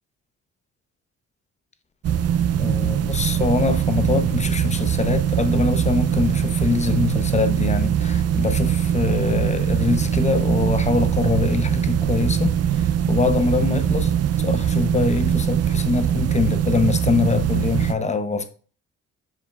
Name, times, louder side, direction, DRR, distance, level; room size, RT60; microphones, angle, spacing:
sound 1, 2.0-17.9, right 9 dB, 55° right, 0.6 m, -22 dB
voice 1, 2.6-18.5, left 4 dB, 25° left, 0.8 m, -23 dB
7.2 x 5.4 x 2.4 m
cardioid pair, 90°, 30 cm